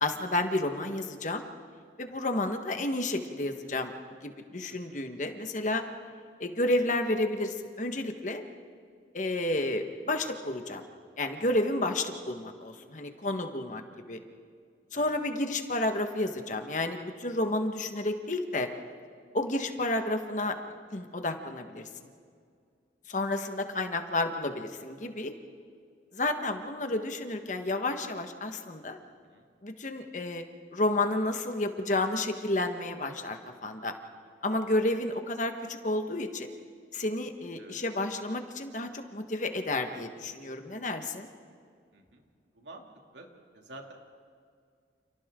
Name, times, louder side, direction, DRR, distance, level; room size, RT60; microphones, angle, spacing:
voice 1, 0.0-1.4 2.0-5.8 6.4-8.4 9.1-10.8 11.2-13.8 14.1-14.2 14.9-18.7 19.3-20.6 20.9-21.9 23.1-25.3 26.1-29.0 29.6-30.4 30.7-33.9 34.4-36.5 36.9-41.3, left 2 dB, 45° left, 6 dB, 1.5 m, -31 dB
voice 2, 4.7-5.1 14.9-15.2 29.2-29.5 37.6-37.8 41.9-42.2 42.5-42.9 43.1-43.3 43.5-43.9, right 2 dB, 80° right, 1 dB, 2.8 m, -49 dB
30.0 x 29.0 x 3.8 m, 2.2 s
head